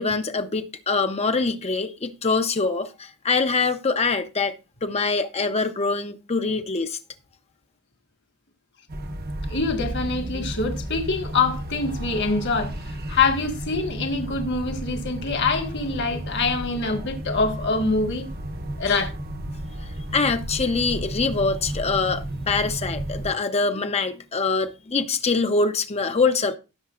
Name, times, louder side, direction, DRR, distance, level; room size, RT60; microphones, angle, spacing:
voice 1, 0.0-4.5 4.8-7.0 18.9-19.0 20.1-26.6, left 4 dB, 30° left, 0.7 m, -24 dB
sound 1, 8.9-23.3, right 1 dB, 45° right, 1.0 m, -33 dB
voice 2, 9.5-12.7 13.1-18.3 18.8-19.1, left 4 dB, 55° left, 1.7 m, -25 dB
16.0 x 6.8 x 2.5 m
head